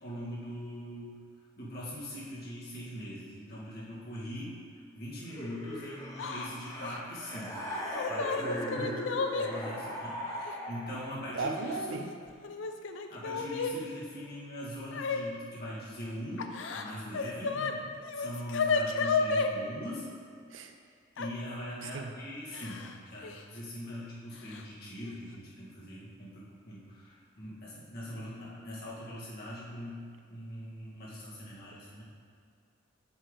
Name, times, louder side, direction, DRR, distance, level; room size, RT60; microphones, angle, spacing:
voice 1, 0.0-1.2 1.6-4.6 4.9-7.6 8.1-9.0 9.4-12.0 13.1-17.6 18.1-20.1 21.2-32.0, equal, 50° left, -6 dB, 1.8 m, -41 dB
sound 1, 5.3-11.1, equal, 15° left, 1.0 m, -39 dB
Yell / Crying sobbing, 6.2-6.5 6.8-7.0 7.7-9.5 10.5-10.6 11.6-12.1 12.4-13.7 14.9-15.2 16.4-17.7 18.0-19.5 21.2-21.3 22.5-22.9 23.2-23.4 24.5-24.6 25.0-25.3, left 4 dB, 65° left, 0.5 m, -32 dB
voice 2, 11.1-12.1 17.5-17.9 20.5-20.7 21.8-22.1, right 3 dB, 75° right, 5 dB, 0.6 m, -37 dB
7.1 x 6.6 x 3.8 m, 2.2 s
head